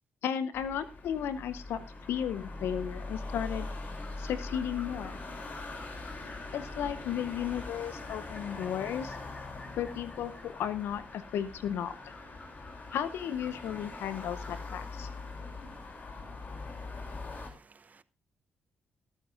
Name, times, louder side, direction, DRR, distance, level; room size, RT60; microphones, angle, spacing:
voice 1, 0.2-3.7 4.2-5.2 6.5-9.2 9.7-12.1 12.9-15.1, left 9 dB, 70° left, 0.8 m, -34 dB
sound 1, 0.5-17.5, left 3 dB, 45° left, 3.2 m, -42 dB
sound 2, 3.8-14.9, left 1 dB, 20° left, 3.6 m, -55 dB
voice 2, 17.3-18.0, right 5 dB, 40° right, 0.8 m, -60 dB
24.0 x 9.0 x 2.6 m
hypercardioid pair, 45°, 4 cm